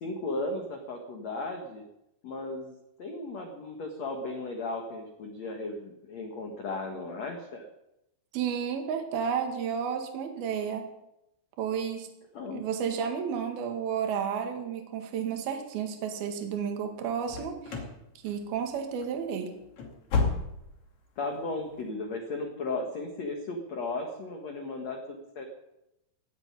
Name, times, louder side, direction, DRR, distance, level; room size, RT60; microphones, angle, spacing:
voice 1, 0.0-1.8 2.2-7.7 12.3-12.6 21.2-25.5, left 2 dB, 70° left, 3 dB, 1.6 m, -35 dB
voice 2, 8.3-10.9 11.6-12.1 12.5-17.8 18.2-19.5, right 7 dB, 60° right, 4 dB, 3.4 m, -32 dB
sound 1, 17.3-18.0 18.3-18.7 19.0-19.2 19.6-20.9 21.2-21.3 21.8-21.9, left 4 dB, 45° left, 3.0 m, -31 dB
17.0 x 8.0 x 9.7 m, 0.87 s
omnidirectional pair, 5.7 m